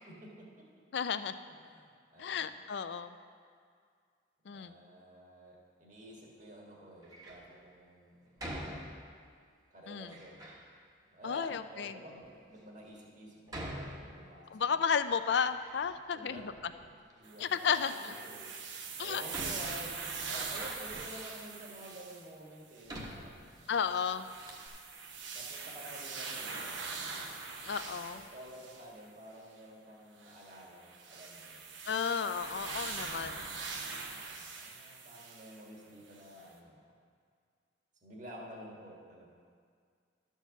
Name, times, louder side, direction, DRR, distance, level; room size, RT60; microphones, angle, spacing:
voice 1, 0.1-0.6 1.7-2.5 4.5-8.6 9.7-10.5 11.0-14.8 16.1-16.5 17.2-18.5 19.0-20.0 20.3-23.7 25.3-27.0 28.1-31.6 33.0-36.9 38.0-39.3, equal, 40° right, -3 dB, 1.6 m, -51 dB
voice 2, 0.9-1.3 2.2-3.2 4.5-4.8 9.9-10.1 11.2-12.0 14.5-16.4 17.4-18.1 19.0-19.2 23.7-24.3 27.6-28.3 31.9-33.4, left 6 dB, 60° left, 12 dB, 0.4 m, -33 dB
Door, 7.0-7.5 8.4-9.4 10.0-10.7 11.4-11.5 12.2-12.3 13.5-14.6 15.0-16.1 16.3-17.2 18.5-18.6 19.3-21.3 21.9-22.0 22.9-23.9 24.2-24.3 24.5-24.7, equal, 20° right, 1.0 m, -45 dB
sound 1, 17.2-22.3 22.8-22.9 23.6-29.0 30.2-35.6 36.1-36.2, right 4 dB, 75° right, 1.0 m, -42 dB
12.0 x 4.6 x 7.0 m, 2.1 s
head